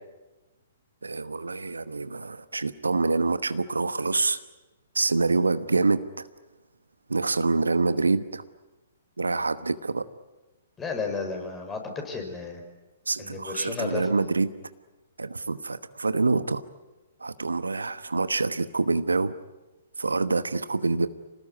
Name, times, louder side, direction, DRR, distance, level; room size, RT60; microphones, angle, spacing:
voice 1, 1.0-4.4 4.9-6.3 7.1-8.4 9.2-10.0 13.1-14.5 15.2-16.6 17.2-19.4 20.0-21.1, right 3 dB, 85° right, 13 dB, 1.1 m, -26 dB
voice 2, 10.8-12.6 13.2-14.1, left 4 dB, 15° left, 4 dB, 5.8 m, -33 dB
26.5 x 19.0 x 9.7 m, 1.1 s
figure-of-eight pair, 125°, 0 cm